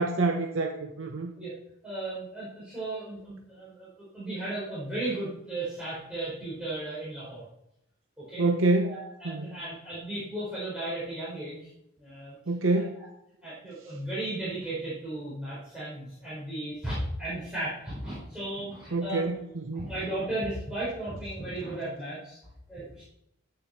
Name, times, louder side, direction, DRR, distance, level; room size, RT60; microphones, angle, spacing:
voice 1, 0.0-1.3 8.4-9.0 9.2-9.5 12.5-13.0 18.9-19.9, right 2 dB, 65° right, 5 dB, 0.9 m, -27 dB
voice 2, 1.8-7.4 8.2-8.4 8.8-11.7 12.0-12.4 12.7-13.1 13.4-19.3 19.7-22.4 22.7-23.0, right 1 dB, 5° right, -11 dB, 4.5 m, -35 dB
13.5 x 8.9 x 4.4 m, 0.82 s
head